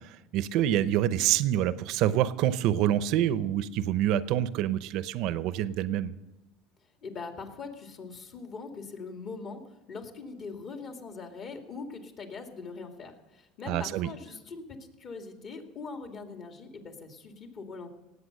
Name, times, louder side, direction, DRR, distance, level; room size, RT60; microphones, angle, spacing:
voice 1, 0.0-6.1 13.7-14.1, right 12 dB, 65° right, 15 dB, 0.7 m, -27 dB
voice 2, 7.0-17.9, left 4 dB, 45° left, 4 dB, 2.2 m, -42 dB
18.0 x 8.1 x 6.5 m, 1.0 s
supercardioid pair, 105°, 0 cm